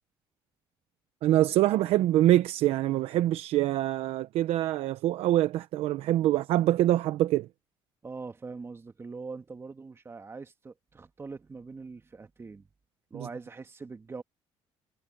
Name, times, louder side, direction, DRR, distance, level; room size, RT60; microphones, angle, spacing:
voice 1, 1.2-7.5 13.1-13.3, right 14 dB, 75° right, 0.9 m, -25 dB
voice 2, 8.0-12.7 13.1-14.2, right 4 dB, 25° right, 1.8 m, -42 dB
cardioid pair, 105°, 10 cm